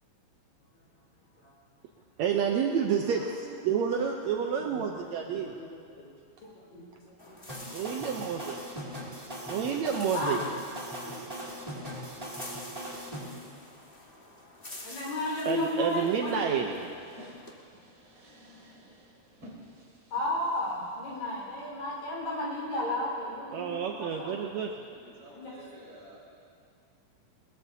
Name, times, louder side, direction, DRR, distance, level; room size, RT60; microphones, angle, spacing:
voice 1, 2.2-5.5 7.7-8.6 9.5-10.4 15.5-16.7 23.5-24.7, right 7 dB, 85° right, 1 dB, 1.5 m, -29 dB
voice 2, 4.7-6.1 6.4-7.1 8.1-8.2 9.5-10.5 11.0-11.2 14.8-16.6 20.1-23.7 24.0-24.3 25.3-25.5, left 1 dB, 75° left, -5 dB, 6.1 m, -34 dB
sound 1, 7.2-17.5, left 1 dB, 40° left, 0.7 m, -49 dB
sound 2, 7.5-13.2, equal, 15° right, 1.8 m, -39 dB
sound 3, 15.6-21.7, equal, 35° right, 2.9 m, -53 dB
voice 3, 23.2-24.6 24.9-26.2, equal, 50° right, -7 dB, 6.8 m, -51 dB
21.5 x 21.0 x 2.8 m, 2.3 s
omnidirectional pair, 4.1 m